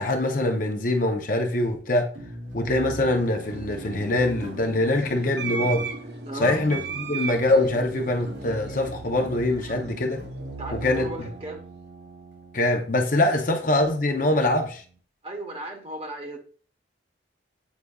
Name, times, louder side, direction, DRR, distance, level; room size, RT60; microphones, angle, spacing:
voice 1, 0.0-2.1 2.5-5.9 6.4-10.2 10.7-11.3 12.5-14.8, left 1 dB, 45° left, 0.7 m, -24 dB
sound 1, 2.2-15.0, right 2 dB, 75° right, 1.9 m, -40 dB
sound 2, 2.8-11.2, right 5 dB, 55° right, 0.6 m, -38 dB
voice 2, 6.3-6.6 10.6-11.6 15.2-16.4, right 2 dB, 30° right, 1.1 m, -35 dB
8.2 x 4.9 x 2.3 m
head